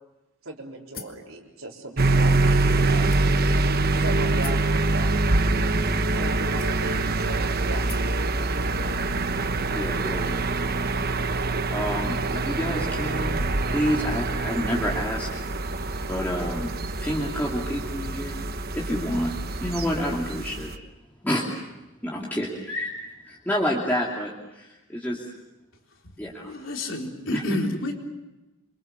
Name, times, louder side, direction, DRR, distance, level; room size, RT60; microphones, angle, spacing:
voice 1, 0.4-3.1 3.9-5.1 5.5-5.8 6.1-7.8, right 2 dB, 80° right, -2 dB, 4.2 m, -37 dB
sound 1, 0.9-1.3 2.1-2.2 3.1-3.6 4.4-4.7 5.7-5.8 6.6-7.1 7.9-8.2, left 6 dB, 45° left, 2.5 m, -42 dB
sound 2, 2.0-20.7, right 2 dB, 45° right, 1.2 m, -25 dB
voice 2, 9.7-10.4 11.7-13.4 13.7-15.3 16.1-16.7 17.0-18.4 18.7-19.3 19.6-20.7 21.2-21.4 22.0-22.9 23.2-25.2 26.2-26.5 27.3-27.4, equal, 10° left, -4 dB, 2.9 m, -28 dB
voice 3, 25.9-27.9, left 1 dB, 65° left, 2 dB, 4.1 m, -30 dB
28.0 x 24.5 x 7.0 m, 1.0 s
head